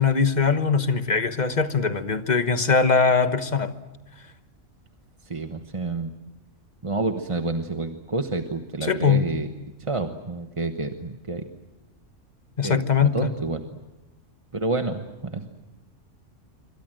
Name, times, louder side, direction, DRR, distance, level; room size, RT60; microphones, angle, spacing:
voice 1, 0.0-3.8 8.8-9.2 12.6-13.3, left 5 dB, 35° left, 10 dB, 1.3 m, -21 dB
voice 2, 5.3-6.1 6.8-9.5 9.9-11.4 12.6-13.6 14.5-15.5, right 3 dB, 25° right, 6 dB, 1.1 m, -29 dB
27.5 x 24.5 x 7.7 m, 1.0 s
omnidirectional pair, 1.3 m